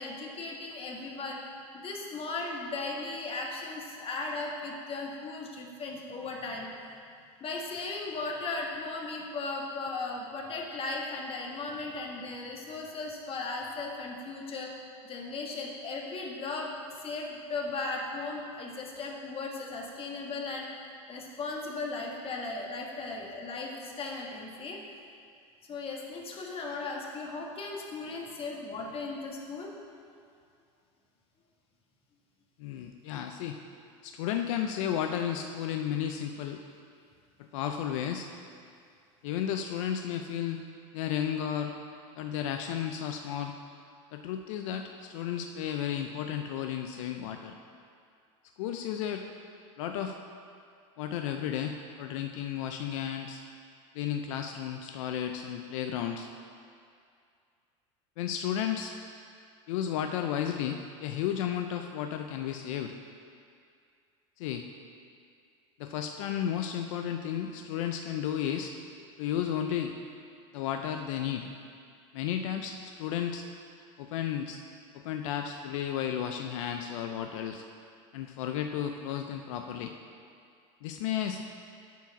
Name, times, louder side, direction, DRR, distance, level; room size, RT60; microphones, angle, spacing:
voice 1, 0.0-1.4 1.7-6.7 7.4-14.7 15.0-16.7 17.0-20.7 21.1-24.8 25.7-29.7, left 3 dB, 35° left, -1 dB, 1.5 m, -37 dB
voice 2, 32.6-33.6 34.0-36.6 37.4-38.3 39.2-40.6 40.9-41.7 42.2-43.6 44.1-47.5 48.6-49.2 49.8-50.2 51.0-53.4 53.9-56.3 58.2-58.9 59.7-62.9 64.4-64.6 65.8-68.7 69.2-69.9 70.5-71.5 72.1-73.4 74.0-74.6 74.9-77.6 78.1-79.9 80.8-81.4, left 9 dB, 80° left, 5 dB, 0.5 m, -33 dB
9.2 x 4.7 x 5.9 m, 2.3 s
supercardioid pair, 105°, 16 cm